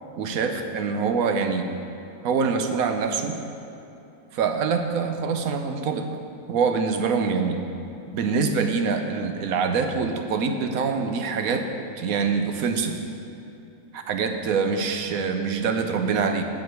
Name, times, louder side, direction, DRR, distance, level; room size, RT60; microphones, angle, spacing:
voice 1, 0.2-1.7 2.2-3.3 4.3-6.2 6.5-7.6 8.1-11.7 12.0-13.0 13.9-16.4, right 5 dB, 80° right, 6 dB, 1.2 m, -25 dB
9.4 x 8.5 x 4.7 m, 2.8 s
omnidirectional pair, 1.5 m